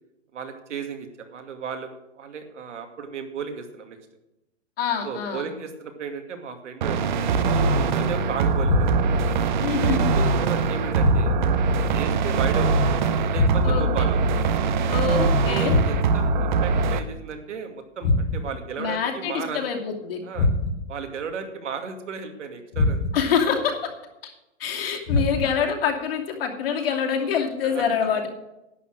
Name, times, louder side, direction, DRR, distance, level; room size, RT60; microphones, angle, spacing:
voice 1, 0.3-4.0 5.0-8.9 9.8-11.4 11.9-12.8 13.3-14.2 15.5-19.6 20.2-20.5 20.9-23.0 25.1-25.2 27.6-27.8, right 6 dB, 75° right, 5 dB, 2.4 m, -34 dB
voice 2, 4.8-5.5 9.6-10.1 13.6-14.1 14.9-15.8 18.8-20.2 23.1-23.8 24.2-24.3 24.6-28.3, left 7 dB, 50° left, 2 dB, 2.6 m, -25 dB
sound 1, 6.8-17.0, right 4 dB, 40° right, 0.9 m, -22 dB
sound 2, 8.6-9.3 11.0-11.6 13.3-14.0 15.7-16.3 18.0-18.6 20.3-21.0 22.7-23.4 25.1-25.7, left 2 dB, 10° left, 0.4 m, -24 dB
11.0 x 8.6 x 6.4 m, 0.92 s
hypercardioid pair, 165°, 37 cm